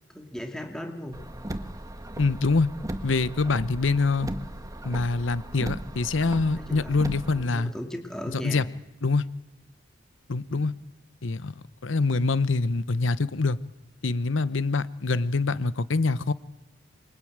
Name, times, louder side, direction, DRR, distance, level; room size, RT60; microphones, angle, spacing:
voice 1, 0.1-1.2 6.5-7.0 7.3-8.6 10.5-10.7, equal, 5° left, 3 dB, 2.6 m, -37 dB
Car, 1.1-7.5, right 1 dB, 20° right, 1.4 m, -37 dB
voice 2, 2.2-2.7 3.0-4.3 4.8-7.7 8.4-8.6 9.0-9.2 10.3-10.7 11.2-11.5 11.8-13.6 14.0-16.3, left 3 dB, 80° left, 16 dB, 0.9 m, -25 dB
26.5 x 23.0 x 8.8 m, 0.96 s
head